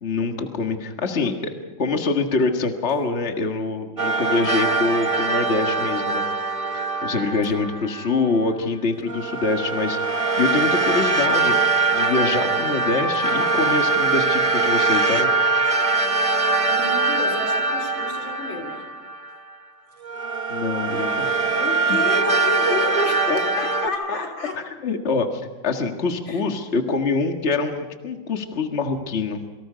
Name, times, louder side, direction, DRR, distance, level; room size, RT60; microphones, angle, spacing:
voice 1, 0.0-1.5 1.8-6.2 6.7-11.6 11.9-15.3 20.5-21.4 21.9-22.0 22.9-23.4 23.8-24.2 24.8-29.4, left 3 dB, 35° left, 2.0 m, -25 dB
voice 2, 1.2-1.6 4.4-4.7 16.7-19.0 21.5-24.8 26.3-26.7, left 4 dB, 85° left, 4.1 m, -32 dB
sound 1, 4.0-8.2 9.1-19.5 20.0-23.9, right 3 dB, 25° right, 0.9 m, -22 dB
27.5 x 25.0 x 5.2 m
omnidirectional pair, 2.1 m